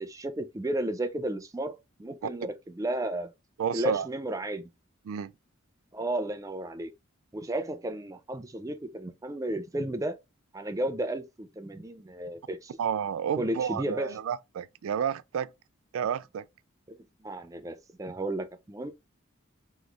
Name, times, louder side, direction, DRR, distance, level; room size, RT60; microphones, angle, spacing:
voice 1, 0.0-3.3 3.7-4.6 5.9-6.9 7.3-10.2 10.5-12.7 13.4-14.1 17.2-18.9, right 1 dB, 15° right, 0.4 m, -33 dB
voice 2, 3.6-4.1 5.1-5.3 12.8-15.5 15.9-16.5, right 8 dB, 80° right, 0.3 m, -30 dB
4.0 x 3.1 x 3.4 m
head